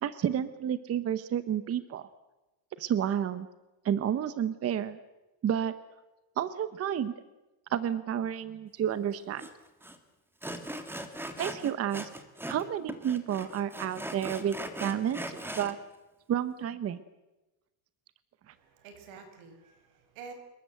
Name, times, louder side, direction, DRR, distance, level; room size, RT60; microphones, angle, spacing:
voice 1, 0.0-2.1 2.8-3.5 3.8-5.0 5.4-5.7 6.4-7.1 7.7-9.5 11.4-12.1 12.5-15.8 16.3-17.0 18.5-18.6, right 9 dB, 30° right, 14 dB, 0.9 m, -30 dB
Sawing, 9.4-9.5 9.8-10.0 10.4-12.6 12.9-15.7, right 1 dB, 5° right, 1.8 m, -39 dB
voice 2, 18.4-20.3, right 5 dB, 80° right, 7 dB, 5.7 m, -49 dB
26.5 x 22.0 x 7.8 m, 1.0 s
cardioid pair, 170°, 50 cm